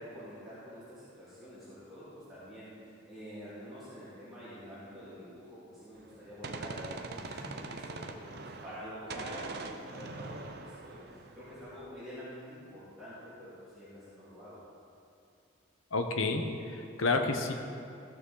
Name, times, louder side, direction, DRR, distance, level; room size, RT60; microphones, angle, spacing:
voice 1, 0.0-14.6, equal, ahead, -14 dB, 2.5 m, -47 dB
Gunshot gunfire, 6.0-8.8 9.1-11.8, right 3 dB, 50° right, 0.6 m, -43 dB
voice 2, 15.9-17.5, left 3 dB, 80° left, 5 dB, 0.9 m, -30 dB
15.0 x 6.0 x 4.0 m, 2.5 s
head